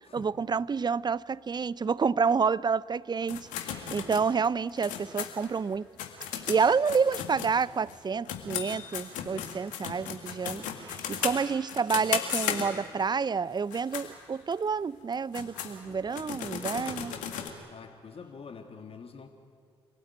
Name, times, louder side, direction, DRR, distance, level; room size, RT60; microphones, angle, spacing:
voice 1, 0.1-5.9 6.3-17.1, right 5 dB, 35° right, 0.6 m, -29 dB
sound 1, 3.3-8.0 8.3-13.0 13.6-14.1 14.5-14.6 15.1-17.5, left 9 dB, 75° left, 2.0 m, -35 dB
voice 2, 10.9-11.4 17.7-19.3, left 5 dB, 50° left, 1.9 m, -46 dB
26.0 x 17.5 x 9.2 m
hypercardioid pair, 40°, 13 cm